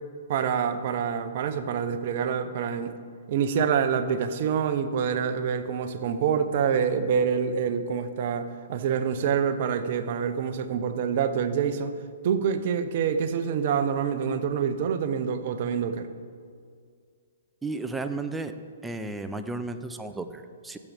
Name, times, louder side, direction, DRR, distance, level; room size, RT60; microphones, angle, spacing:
voice 1, 0.3-2.9 3.3-11.9 12.2-16.1, right 7 dB, 50° right, 10 dB, 0.7 m, -26 dB
voice 2, 17.6-18.6 18.8-20.8, right 3 dB, 10° right, 8 dB, 0.6 m, -33 dB
15.5 x 7.3 x 3.5 m, 2.1 s
figure-of-eight pair, 120°, 0 cm